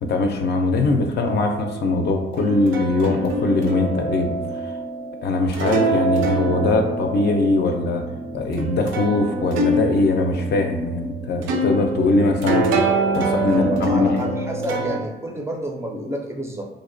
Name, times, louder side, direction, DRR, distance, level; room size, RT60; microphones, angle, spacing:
voice 1, 0.0-4.7 5.2-8.0 8.3-12.9 13.1-14.1, left 3 dB, 55° left, 4 dB, 0.4 m, -21 dB
sound 1, 1.2-15.0, right 2 dB, 75° right, 0.4 m, -25 dB
voice 2, 13.5-16.7, right 1 dB, 15° right, 1 dB, 0.4 m, -29 dB
2.5 x 2.1 x 2.5 m, 0.96 s
cardioid pair, 90°, 20 cm